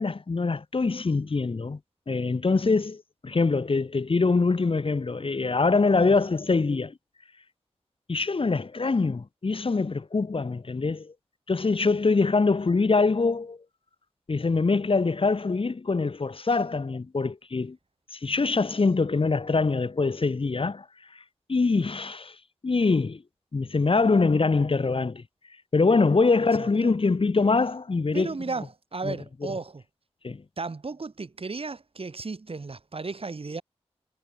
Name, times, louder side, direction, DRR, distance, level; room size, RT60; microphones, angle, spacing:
voice 1, 0.0-1.8 2.1-6.9 8.1-11.1 11.5-13.6 14.3-17.8 18.1-20.9 21.5-22.3 22.6-23.2 23.5-25.2 25.7-28.4 29.0-29.2 30.2-30.4, left 4 dB, 55° left, 1.8 m, -24 dB
voice 2, 26.6-26.9 28.1-29.8 30.6-33.6, right 3 dB, 55° right, 4.5 m, -35 dB
cardioid pair, 55°, 11 cm